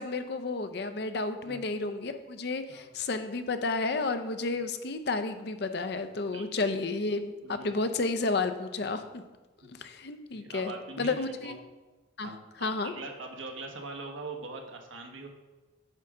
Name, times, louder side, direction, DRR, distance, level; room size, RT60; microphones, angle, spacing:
voice 1, 0.0-9.2 9.8-11.6 12.2-12.3 12.6-12.9, left 3 dB, 55° left, 9 dB, 0.6 m, -31 dB
voice 2, 7.4-7.7 9.6-9.7 10.3-11.6 12.2-15.3, right 3 dB, 85° right, 3 dB, 1.2 m, -42 dB
8.9 x 3.7 x 6.1 m, 1.2 s
head